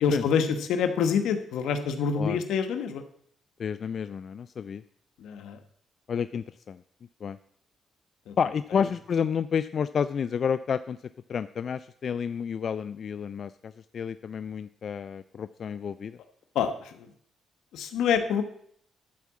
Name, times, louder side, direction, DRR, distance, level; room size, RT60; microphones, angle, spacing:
voice 1, 0.0-3.0 5.2-5.6 8.3-8.4 8.8-8.9 16.5-17.1 17.7-18.4, left 6 dB, 85° left, 7 dB, 1.1 m, -26 dB
voice 2, 3.6-4.8 6.1-6.8 7.2-7.4 8.4-11.0 11.3-16.2, left 7 dB, 55° left, 13 dB, 0.3 m, -30 dB
11.5 x 4.7 x 7.3 m, 0.66 s
cardioid pair, 85°, 0 cm